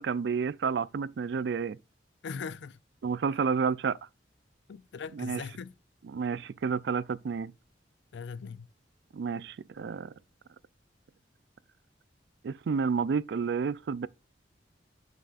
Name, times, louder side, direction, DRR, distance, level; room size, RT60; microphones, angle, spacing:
voice 1, 0.0-1.8 3.0-4.0 5.2-5.4 6.1-7.5 9.1-10.1 12.4-14.1, right 5 dB, 65° right, 0.3 m, -30 dB
voice 2, 2.2-2.8 4.7-5.7 8.1-8.7, left 5 dB, 75° left, 0.4 m, -40 dB
9.7 x 5.9 x 2.4 m
head